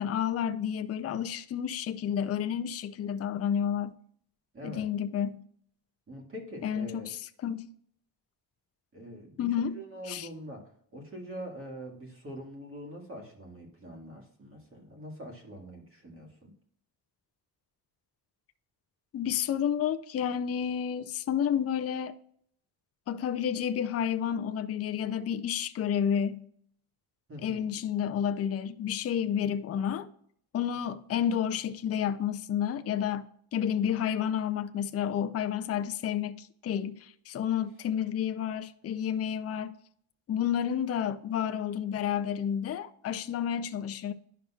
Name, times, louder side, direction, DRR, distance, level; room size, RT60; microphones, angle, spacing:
voice 1, 0.0-4.0 4.6-5.4 6.6-7.7 9.4-9.8 10.1-10.3 19.1-22.1 23.1-26.4 27.4-30.1 30.5-39.7 40.3-44.1, left 9 dB, 35° left, 0.4 m, -30 dB
voice 2, 4.5-4.9 6.1-7.1 8.9-16.5 27.3-27.7, equal, 30° right, 1.8 m, -44 dB
10.5 x 5.8 x 2.3 m
cardioid pair, 155°, 41 cm